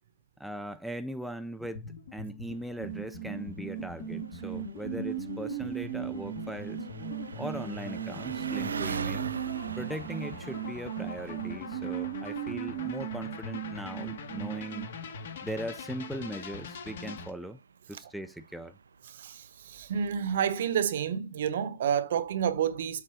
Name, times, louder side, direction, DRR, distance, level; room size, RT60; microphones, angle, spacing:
voice 1, 0.4-1.8 2.1-6.8 7.3-9.3 9.8-14.9 15.4-17.6 17.9-18.8, right 1 dB, ahead, 0.5 m, -39 dB
sound 1, 1.6-17.3, left 5 dB, 60° left, 2.0 m, -42 dB
Engine, 2.5-20.6, right 5 dB, 80° right, 0.6 m, -45 dB
sound 2, 2.8-14.9, right 20 dB, 40° right, 0.6 m, -38 dB
voice 2, 19.1-23.0, right 8 dB, 60° right, 1.0 m, -29 dB
7.6 x 3.8 x 5.7 m
hypercardioid pair, 130°, 0 cm